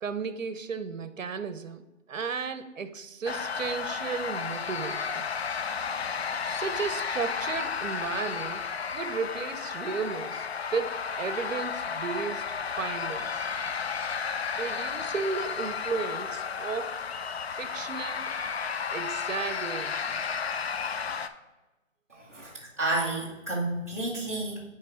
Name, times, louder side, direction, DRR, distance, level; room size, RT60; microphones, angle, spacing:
voice 1, 0.0-1.8 2.1-5.3 6.4-12.4 12.7-13.4 14.6-17.0 17.5-18.3 18.9-20.2, right 5 dB, 70° right, 12 dB, 0.8 m, -34 dB
sound 1, 3.3-21.3, left 6 dB, 55° left, 0.5 m, -33 dB
voice 2, 22.1-24.6, right 2 dB, 10° right, -9 dB, 0.6 m, -31 dB
9.2 x 3.1 x 4.8 m, 1.1 s
hypercardioid pair, 160°, 40 cm